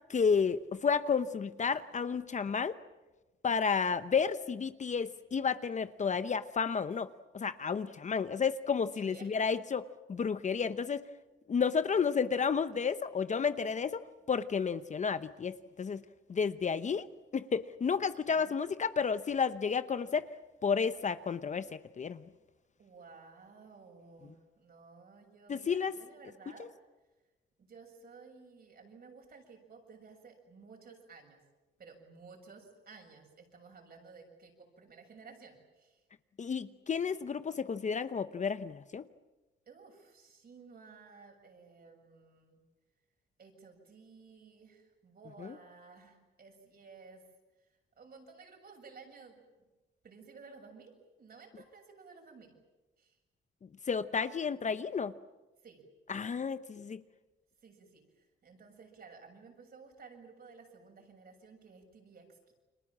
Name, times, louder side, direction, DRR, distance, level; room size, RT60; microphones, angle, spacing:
voice 1, 0.1-2.7 3.4-7.1 7.3-11.0 11.5-14.0 14.3-16.0 16.3-17.1 17.3-20.2 20.6-21.7 22.0-22.2 25.5-25.9 36.4-39.0 53.9-55.1 56.1-57.0, left 6 dB, 35° left, 12 dB, 0.9 m, -31 dB
voice 2, 8.9-9.3 18.3-18.6 22.8-26.7 27.6-31.4 31.8-36.0 39.7-42.6 43.4-47.2 48.0-49.4 50.0-52.6 53.0-53.2 55.6-55.8 56.2-56.4 57.6-62.5, right 4 dB, 50° right, 2 dB, 7.3 m, -55 dB
30.0 x 23.5 x 7.4 m, 1.1 s
cardioid pair, 90°, 20 cm